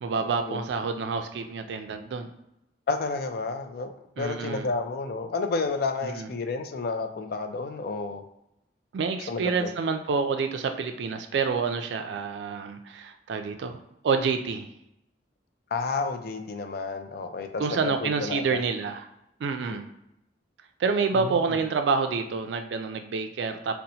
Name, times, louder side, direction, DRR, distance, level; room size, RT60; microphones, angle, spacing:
voice 1, 0.0-2.3 4.2-4.7 6.0-6.3 8.9-13.8 14.0-14.7 17.6-19.1 19.4-19.9 20.8-23.7, right 5 dB, 75° right, 6 dB, 0.3 m, -28 dB
voice 2, 2.9-8.2 9.3-9.7 15.7-18.6 19.7-19.8 21.1-21.4, left 4 dB, 60° left, 7 dB, 0.4 m, -31 dB
2.8 x 2.1 x 4.0 m, 0.83 s
head